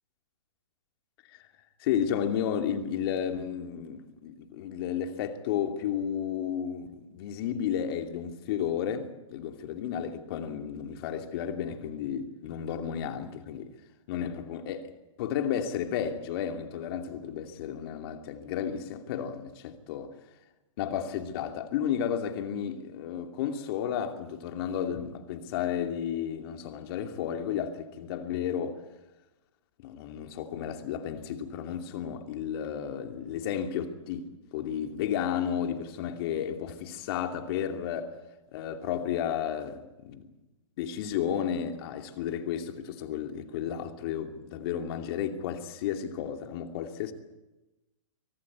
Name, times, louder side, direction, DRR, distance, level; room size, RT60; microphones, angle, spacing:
voice 1, 1.8-13.7 14.1-14.9 15.2-20.2 20.8-28.8 29.8-38.2 38.5-40.3 40.8-47.1, left 9 dB, 50° left, 2.7 m, -32 dB
24.5 x 17.5 x 9.6 m
hypercardioid pair, 130°, 17 cm